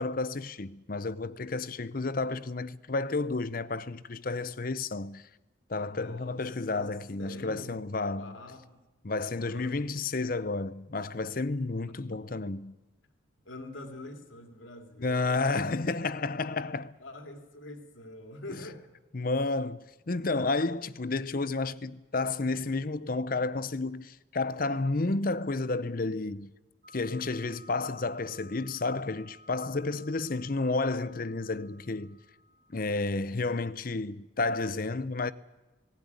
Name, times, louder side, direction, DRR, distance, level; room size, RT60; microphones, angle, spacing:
voice 1, 0.0-5.3 5.7-8.4 9.0-12.8 15.0-16.9 18.5-18.6 19.1-26.5 26.9-32.2 32.7-35.3, left 3 dB, 45° left, 0.7 m, -31 dB
voice 2, 5.9-6.9 7.2-7.8 8.1-8.8 9.3-9.9 12.4-12.5 13.4-15.7 17.0-18.8, left 1 dB, 90° left, 2.5 m, -45 dB
sound 1, 26.8-33.0, left 1 dB, 50° right, 1.3 m, -56 dB
18.0 x 17.5 x 9.6 m
head